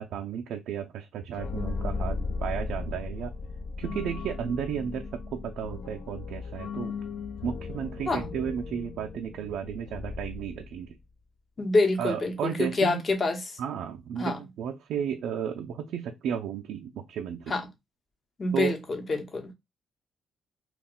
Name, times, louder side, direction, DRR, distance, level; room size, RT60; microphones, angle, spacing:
voice 1, 0.0-3.3 3.8-6.9 7.4-10.9 12.0-13.0 13.6-17.6 18.5-18.8, right 8 dB, 80° right, 0.3 m, -33 dB
sound 1, 1.3-11.0, left 4 dB, 65° left, 0.5 m, -36 dB
voice 2, 11.6-13.6 14.2-14.4 17.5-17.7 18.4-19.5, left 2 dB, 40° left, 0.8 m, -26 dB
2.4 x 2.2 x 3.7 m
cardioid pair, 90°, 0 cm